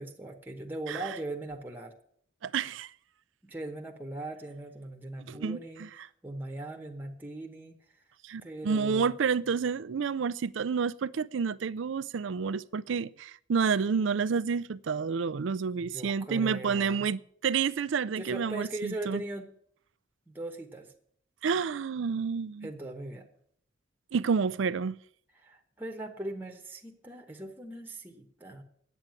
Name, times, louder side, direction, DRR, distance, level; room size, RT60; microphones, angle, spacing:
voice 1, 0.0-1.9 3.4-7.7 8.4-9.1 15.8-17.1 18.1-19.5 20.3-20.9 22.6-23.3 25.4-28.6, right 2 dB, 10° right, 1.1 m, -40 dB
voice 2, 2.4-2.9 5.3-5.9 8.2-19.2 21.4-22.7 24.1-25.0, right 5 dB, 70° right, 0.4 m, -29 dB
9.1 x 8.5 x 9.0 m
head